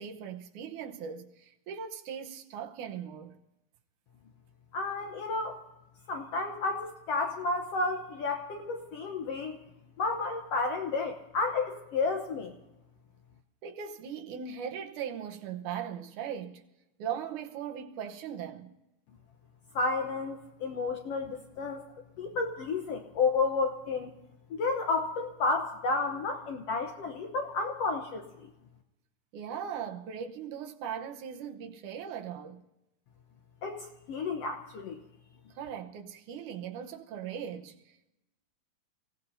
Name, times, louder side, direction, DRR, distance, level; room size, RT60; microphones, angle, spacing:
voice 1, 0.0-3.4 13.6-16.6 17.0-18.7 29.3-32.6 35.6-38.1, right 8 dB, 75° right, 2.5 m, -39 dB
voice 2, 4.7-5.6 6.1-9.6 10.0-12.5 19.7-21.8 22.2-24.1 24.5-28.5 33.6-35.0, left 3 dB, 65° left, 1.6 m, -31 dB
28.0 x 17.0 x 2.7 m
omnidirectional pair, 3.7 m